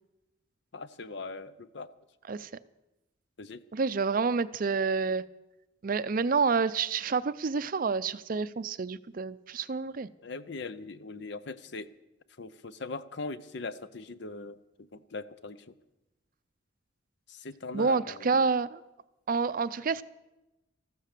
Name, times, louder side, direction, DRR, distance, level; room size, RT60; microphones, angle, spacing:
voice 1, 0.7-1.9 2.3-2.4 3.4-3.6 10.2-11.9 12.4-14.6 14.9-15.6 17.3-18.3, left 3 dB, 60° left, 14 dB, 0.7 m, -40 dB
voice 2, 3.7-5.2 5.8-10.1 17.7-18.8 19.3-20.0, right 4 dB, 45° right, 15 dB, 0.5 m, -28 dB
14.0 x 13.0 x 6.7 m, 0.98 s
head